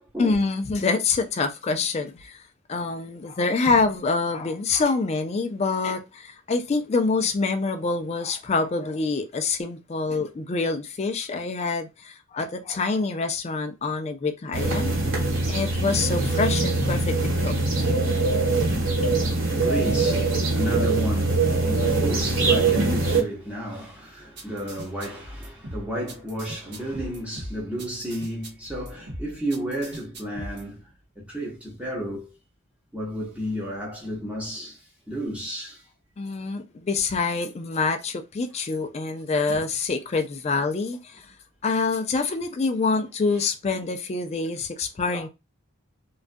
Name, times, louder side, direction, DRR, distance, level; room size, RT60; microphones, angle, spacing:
voice 1, 0.2-2.4 2.7-14.9 15.5-17.6 36.2-41.3 41.6-45.3, left 4 dB, 30° left, 0.3 m, -26 dB
sound 1, 14.5-23.2, right 3 dB, 90° right, 1.1 m, -23 dB
voice 2, 18.6-30.9 31.2-32.3 32.9-35.8 39.5-39.6, equal, 5° right, 0.8 m, -32 dB
sound 2, 24.4-30.6, right 1 dB, 55° right, 0.7 m, -39 dB
2.4 x 2.2 x 2.5 m
head